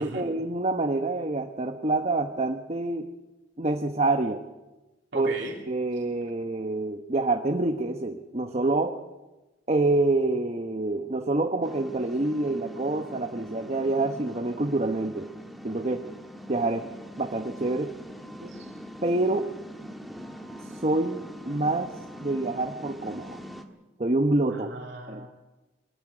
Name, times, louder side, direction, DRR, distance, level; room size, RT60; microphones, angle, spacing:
voice 1, 0.0-3.1 3.6-4.4 5.1-5.3 5.7-9.0 9.7-15.3 15.6-16.0 16.5-16.9 17.2-17.9 19.0-19.5 20.8-21.9 22.2-23.4 24.0-24.8 25.1-25.3, right 2 dB, 35° right, 5 dB, 1.0 m, -27 dB
voice 2, 5.1-5.5 18.4-18.7 24.5-25.3, right 1 dB, 60° right, 0 dB, 3.2 m, -38 dB
sound 1, 11.6-23.6, equal, ahead, 1.5 m, -43 dB
22.0 x 14.0 x 9.7 m, 1.1 s
head